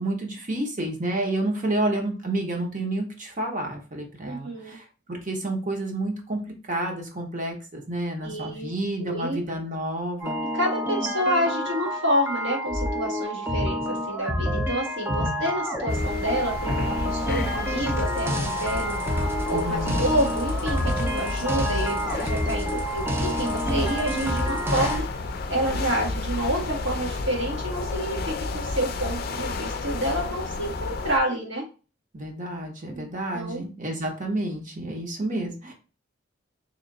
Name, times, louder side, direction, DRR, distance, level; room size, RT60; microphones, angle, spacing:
voice 1, 0.0-6.4 6.7-10.4 15.2-15.5 19.5-20.0 32.1-35.7, right 1 dB, 45° right, 2 dB, 1.0 m, -30 dB
voice 2, 4.2-4.8 8.2-8.7 9.0-9.4 10.5-25.0 25.5-31.6 32.9-33.0 33.3-33.6, right 1 dB, 75° right, -2 dB, 1.5 m, -28 dB
sound 1, 10.2-25.0, equal, 10° right, 0.5 m, -28 dB
sound 2, 15.9-31.2, left 3 dB, 55° left, 0.5 m, -31 dB
3.2 x 3.0 x 3.8 m, 0.34 s
head